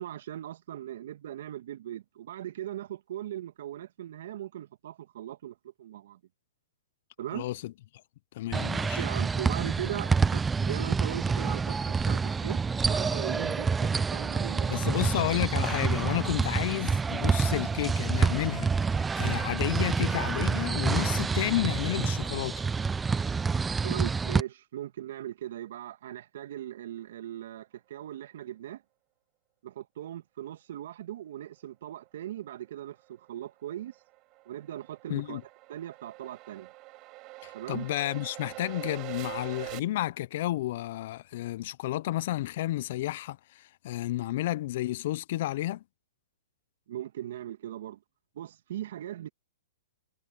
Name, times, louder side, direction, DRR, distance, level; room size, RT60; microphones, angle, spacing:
voice 1, 0.0-6.2 7.2-7.5 8.8-15.0 23.8-28.8 29.6-34.0 34.5-35.4 35.7-36.7 37.5-37.9 46.9-48.0 48.4-49.3, right 12 dB, 60° right, 1.8 m, -39 dB
voice 2, 7.3-7.7 8.3-9.0 14.7-22.6 35.1-35.4 37.4-45.8, left 15 dB, 55° left, 0.7 m, -31 dB
sound 1, 8.5-24.4, right 5 dB, 10° right, 0.7 m, -28 dB
sound 2, 33.2-39.8, right 21 dB, 35° right, 5.5 m, -44 dB
hypercardioid pair, 125°, 0 cm